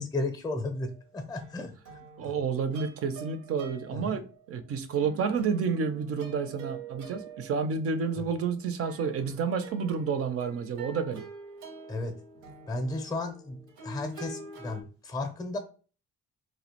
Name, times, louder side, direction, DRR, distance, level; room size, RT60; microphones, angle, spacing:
voice 1, 0.0-2.4 3.9-4.2 11.9-12.1 12.7-15.6, left 2 dB, 15° left, 0.5 m, -34 dB
sound 1, 0.7-1.0 1.3-4.4 4.9-14.8, right 4 dB, 85° right, 0.7 m, -47 dB
voice 2, 2.2-11.2, right 5 dB, 50° right, 0.4 m, -30 dB
2.3 x 2.1 x 2.8 m
cardioid pair, 90°, 30 cm